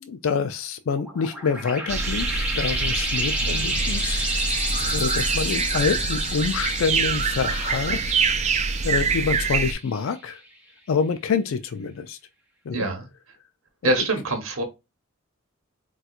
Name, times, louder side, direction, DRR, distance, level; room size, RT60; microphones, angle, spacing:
voice 1, 0.0-4.6 4.9-8.5 8.8-10.4 10.9-12.2 12.7-12.9, left 5 dB, 65° left, 0.4 m, -27 dB
sound 1, 1.0-10.1, right 1 dB, 5° right, 0.9 m, -30 dB
sound 2, 1.9-9.7, right 5 dB, 30° right, 0.3 m, -25 dB
voice 2, 12.7-13.1 13.8-14.6, right 1 dB, 70° right, 1.1 m, -25 dB
4.2 x 2.3 x 2.4 m
head